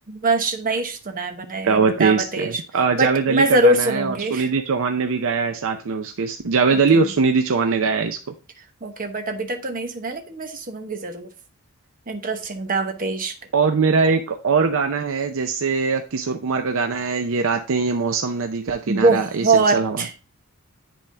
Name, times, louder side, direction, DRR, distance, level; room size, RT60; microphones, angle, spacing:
voice 1, 0.1-2.5 2.9-4.5 6.7-6.8 8.8-11.3 12.1-13.3 18.9-20.1, right 2 dB, 40° right, 1.0 m, -23 dB
voice 2, 1.6-8.2 13.5-20.1, right 5 dB, 65° right, 0.5 m, -21 dB
10.0 x 3.6 x 3.3 m
head